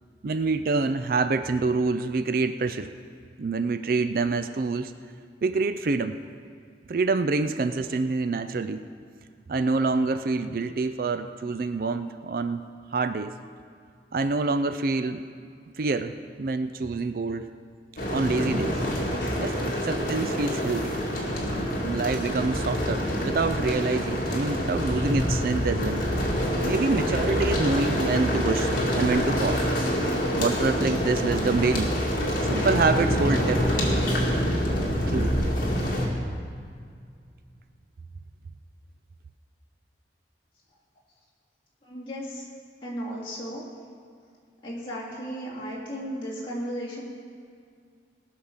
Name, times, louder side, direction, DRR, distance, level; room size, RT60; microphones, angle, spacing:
voice 1, 0.2-2.9 3.4-4.9 5.4-6.1 6.9-8.8 9.5-12.6 12.9-13.3 14.1-15.2 15.8-16.1 16.4-17.5 18.1-18.8 19.4-21.0 21.8-26.0 26.6-29.7 30.4-31.9 32.5-33.7 35.0-35.3, right 3 dB, 50° right, 10 dB, 0.4 m, -26 dB
sound 1, 18.0-36.1, equal, 50° left, 2.2 m, -26 dB
voice 2, 41.8-42.5 42.8-43.6 44.6-47.0, equal, 30° left, -8 dB, 3.2 m, -35 dB
19.0 x 6.4 x 5.6 m, 2.2 s
head